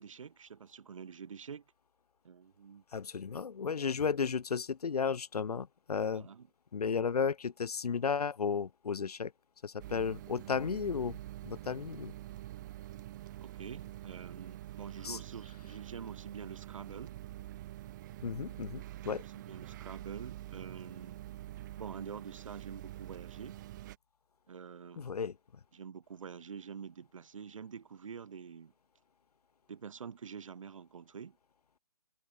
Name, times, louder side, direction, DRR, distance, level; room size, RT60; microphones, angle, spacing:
voice 1, 0.0-1.6 2.2-2.8 6.1-6.5 13.4-17.2 18.9-21.2 21.8-23.6 24.5-25.1 25.7-28.7 29.7-31.4, right 6 dB, 55° right, 1.1 m, -47 dB
voice 2, 2.9-6.3 6.7-9.3 9.6-12.1 15.0-15.2 18.2-19.2 25.0-25.4, left 6 dB, 80° left, 0.5 m, -34 dB
sound 1, 9.8-24.0, right 14 dB, 30° right, 3.1 m, -46 dB
figure-of-eight pair, 145°, 20 cm